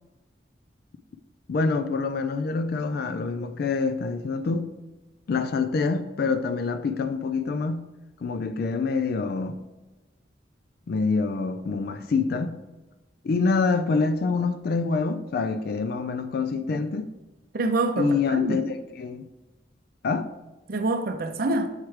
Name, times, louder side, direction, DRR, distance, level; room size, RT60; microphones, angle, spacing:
voice 1, 1.5-4.7 5.3-7.9 8.2-9.6 10.9-12.6 13.2-17.1 18.0-19.2 20.0-20.3, left 4 dB, 55° left, 0.3 m, -26 dB
voice 2, 17.5-18.6 20.7-21.7, right 2 dB, 50° right, 0.5 m, -26 dB
7.3 x 4.5 x 3.2 m
head